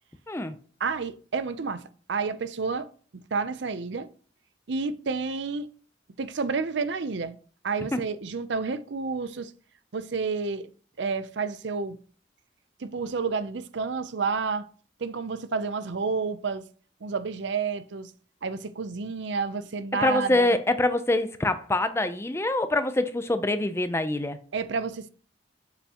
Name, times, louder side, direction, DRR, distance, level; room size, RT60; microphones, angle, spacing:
voice 1, 0.8-1.8 2.1-2.9 3.3-4.1 4.7-5.7 6.2-7.4 7.6-9.5 9.9-10.7 11.0-12.0 12.8-14.6 15.0-16.6 17.0-18.1 18.4-20.6 24.5-25.1, right 4 dB, 65° right, 0.6 m, -30 dB
voice 2, 20.0-24.4, left 2 dB, 15° left, 0.5 m, -25 dB
7.1 x 5.5 x 2.9 m
head